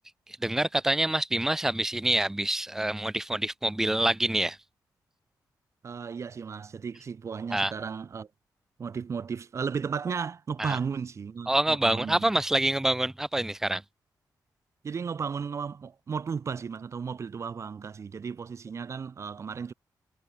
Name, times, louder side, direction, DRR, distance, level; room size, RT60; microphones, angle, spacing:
voice 1, 0.3-4.6 7.5-7.7 10.6-10.8 11.5-13.8, right 1 dB, 5° right, 0.3 m, -26 dB
voice 2, 5.8-8.3 8.8-12.2 14.8-19.7, right 6 dB, 40° right, 0.6 m, -34 dB
wide cardioid pair, 130°, 7 cm